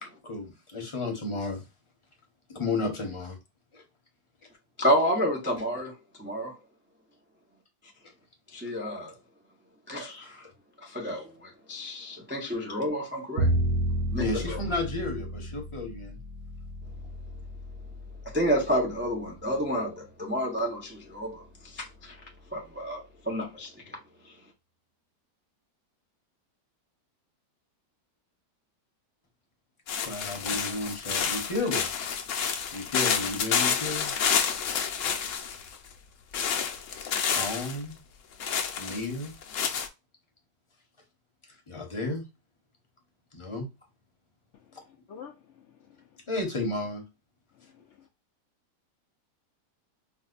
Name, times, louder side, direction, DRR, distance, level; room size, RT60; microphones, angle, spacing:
voice 1, 0.0-1.6 2.5-3.4 3.7-3.8 10.2-10.5 14.2-16.2 30.0-31.9 32.7-34.1 37.3-38.0 38.8-39.3 41.7-42.2 43.3-43.7 44.7-44.8 46.3-47.0, left 2 dB, 25° left, 0.7 m, -33 dB
voice 2, 4.8-6.5 8.5-9.1 9.9-10.3 10.8-13.5 14.1-14.6 18.2-22.2 22.5-24.0 24.2-24.3, equal, 20° right, 0.3 m, -30 dB
Bowed string instrument, 13.4-19.6, right 1 dB, 70° right, 1.0 m, -32 dB
sound 1, 29.9-35.8 36.3-37.8 38.4-39.9, left 7 dB, 60° left, 0.8 m, -29 dB
voice 3, 44.9-46.1, left 7 dB, 90° left, 0.6 m, -48 dB
4.7 x 2.2 x 2.4 m
omnidirectional pair, 1.8 m